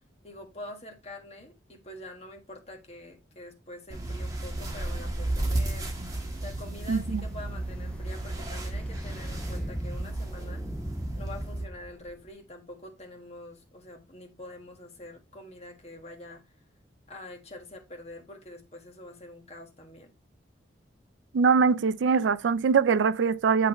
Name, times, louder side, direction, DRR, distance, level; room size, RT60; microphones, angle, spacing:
voice 1, 0.2-5.9 6.4-10.6 11.1-16.4 17.1-20.1, left 1 dB, 35° left, 1.5 m, -45 dB
sound 1, 3.9-11.6, right 1 dB, 20° right, 1.5 m, -33 dB
sound 2, 6.0-12.3, equal, 5° left, 0.3 m, -42 dB
voice 2, 6.9-7.2 21.3-23.7, right 5 dB, 80° right, 0.4 m, -23 dB
7.2 x 5.9 x 3.0 m
head